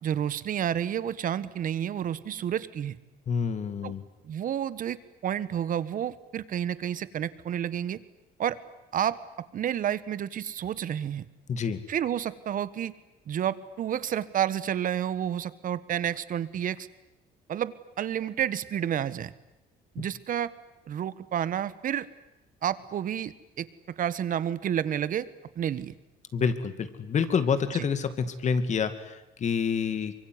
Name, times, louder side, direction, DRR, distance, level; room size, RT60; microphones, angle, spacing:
voice 1, 0.0-3.0 3.8-3.9 4.2-5.0 5.2-8.0 8.4-8.6 8.9-9.2 9.5-11.2 11.9-12.9 13.3-16.9 17.5-19.3 19.9-20.5 20.9-22.0 22.6-23.7 24.0-25.3 25.5-25.9, right 10 dB, 55° right, 16 dB, 1.5 m, -30 dB
voice 2, 3.3-4.0 11.5-11.8 20.0-20.1 26.3-30.1, left 6 dB, 45° left, 11 dB, 2.5 m, -28 dB
24.5 x 23.5 x 9.7 m, 0.94 s
cardioid pair, 110°, 17 cm